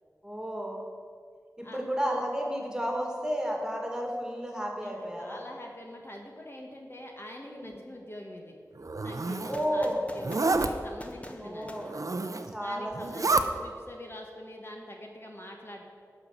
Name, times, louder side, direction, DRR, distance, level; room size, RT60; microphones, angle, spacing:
voice 1, 0.2-0.8 1.6-5.4 7.5-7.8 9.5-10.0 11.4-11.9 12.5-13.1, equal, 10° right, 0 dB, 2.2 m, -32 dB
voice 2, 4.8-8.6 9.0-11.8 12.6-15.8, left 1 dB, 40° left, 1 dB, 1.4 m, -44 dB
Zipper (clothing), 8.8-9.6 10.2-10.7 11.8-12.5 12.9-13.5, right 3 dB, 60° right, 0.6 m, -28 dB
sound 1, 9.5-12.7, left 1 dB, 20° left, 1.1 m, -48 dB
12.0 x 5.5 x 8.1 m, 2.1 s
wide cardioid pair, 60°, 6 cm